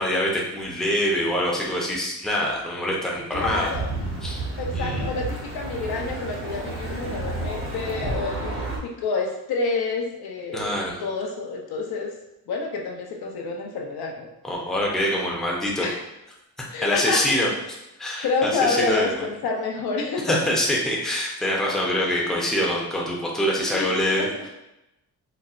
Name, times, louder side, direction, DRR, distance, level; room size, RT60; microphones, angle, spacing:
voice 1, 0.0-3.7 4.2-4.4 4.7-5.1 10.5-11.0 14.4-15.9 16.6-17.5 18.0-18.3 18.6-19.2 20.2-24.5, equal, ahead, -3 dB, 0.6 m, -25 dB
voice 2, 3.3-3.9 4.6-8.5 8.8-12.1 12.5-14.3 15.8-16.0 16.7-17.5 18.2-20.4 22.0-22.3 23.7-24.3, left 4 dB, 70° left, 0 dB, 0.7 m, -28 dB
sound 1, 3.3-8.8, right 2 dB, 35° right, 0.7 m, -31 dB
4.1 x 2.0 x 2.4 m, 0.91 s
cardioid pair, 100°, 39 cm